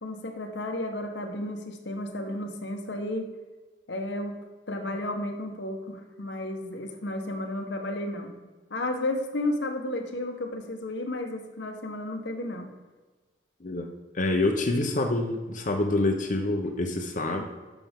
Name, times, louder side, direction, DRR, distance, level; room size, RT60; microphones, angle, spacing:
voice 1, 0.0-3.3 3.9-4.3 4.7-12.7, left 1 dB, 80° left, 4 dB, 1.2 m, -33 dB
voice 2, 14.1-17.4, left 2 dB, 45° left, 2 dB, 0.8 m, -26 dB
11.5 x 6.1 x 3.6 m, 1.3 s
head